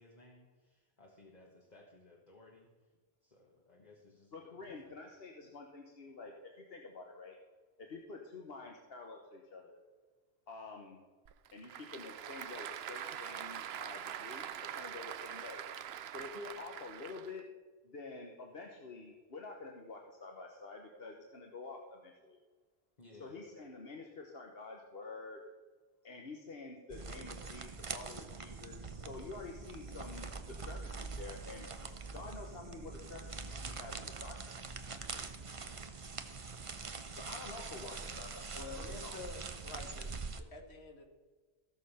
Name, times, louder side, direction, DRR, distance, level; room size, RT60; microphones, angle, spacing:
voice 1, 0.0-2.9 3.2-4.9 23.0-23.5, left 2 dB, 40° left, -1 dB, 1.6 m, -60 dB
voice 2, 4.3-7.4 7.8-9.8 10.5-11.0 11.5-15.6 16.1-17.5 17.8-22.4 23.2-25.4 26.0-31.7 32.1-34.6 37.1-39.2, left 3 dB, 65° left, 1 dB, 1.4 m, -48 dB
Applause / Crowd, 11.2-17.4, right 10 dB, 80° right, 0.9 m, -44 dB
sound 1, 26.9-40.4, right 4 dB, 35° right, 0.7 m, -44 dB
voice 3, 38.6-40.1 40.4-41.0, left 3 dB, 90° left, 4 dB, 2.0 m, -48 dB
16.0 x 6.7 x 5.6 m, 1.4 s
omnidirectional pair, 1.1 m